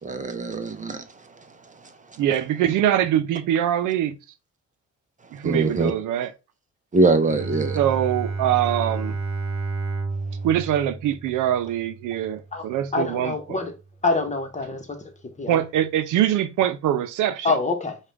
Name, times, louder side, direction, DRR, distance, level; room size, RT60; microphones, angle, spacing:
voice 1, 0.0-1.3 1.6-1.9 5.4-5.9 6.9-7.8, right 3 dB, 25° right, 0.6 m, -23 dB
voice 2, 2.2-4.2 5.3-6.3 7.7-9.2 10.4-13.6 15.5-17.5, right 11 dB, 85° right, 0.6 m, -23 dB
Bowed string instrument, 7.2-13.0, right 3 dB, 45° right, 1.7 m, -31 dB
voice 3, 12.9-13.7 14.0-15.0 15.4-15.6 17.4-18.0, left 3 dB, 25° left, 1.0 m, -25 dB
5.0 x 2.4 x 3.4 m
cardioid pair, 90°, 30 cm